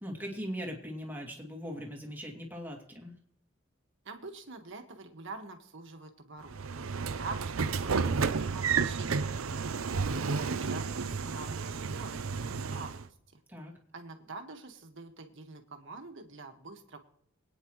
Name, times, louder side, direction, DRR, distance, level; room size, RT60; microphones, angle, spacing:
voice 1, 0.0-3.1 13.5-13.7, equal, 10° right, 0 dB, 2.6 m, -40 dB
voice 2, 4.0-9.7 10.2-13.4 13.9-17.0, right 3 dB, 65° right, 5 dB, 1.7 m, -46 dB
Train / Sliding door, 6.5-13.1, right 5 dB, 80° right, 0.7 m, -31 dB
23.5 x 9.5 x 3.1 m, 0.71 s
head